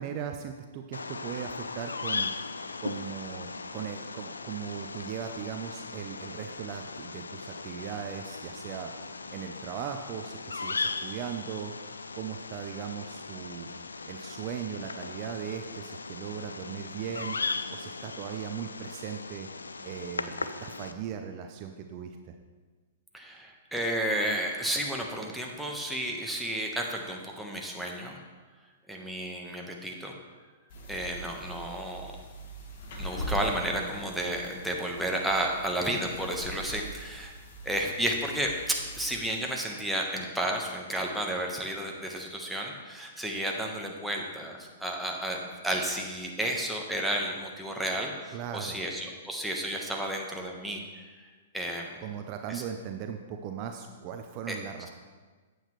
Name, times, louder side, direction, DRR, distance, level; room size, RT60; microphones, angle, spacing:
voice 1, 0.0-2.3 2.8-8.9 9.3-11.7 12.1-13.7 14.1-17.4 17.7-19.5 19.8-22.3 48.3-48.8 52.0-54.9, right 8 dB, 40° right, 5 dB, 0.6 m, -38 dB
Bird vocalization bird call bird song, 0.9-20.9, left 4 dB, 90° left, 0.4 m, -38 dB
voice 2, 23.1-28.2 28.9-30.1 30.9-32.1 33.0-37.3 37.6-51.2 51.5-52.0 52.5-52.6 54.5-54.6, right 1 dB, ahead, -1 dB, 1.2 m, -32 dB
sound 1, 30.7-39.2, equal, 55° left, 1.5 m, -41 dB
8.8 x 7.8 x 3.2 m, 1.4 s
hypercardioid pair, 115°, 0 cm